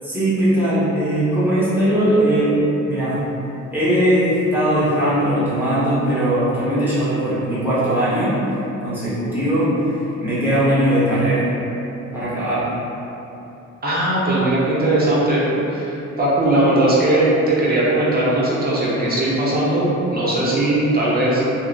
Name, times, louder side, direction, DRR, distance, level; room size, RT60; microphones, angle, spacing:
voice 1, 0.0-3.2 3.7-8.4 8.8-9.8 10.2-11.5 12.1-12.8, right 1 dB, 5° right, -12 dB, 1.2 m, -19 dB
voice 2, 13.8-15.4 15.7-21.4, right 1 dB, 30° right, -7 dB, 0.7 m, -19 dB
2.8 x 2.4 x 2.4 m, 2.9 s
cardioid pair, 90°, 30 cm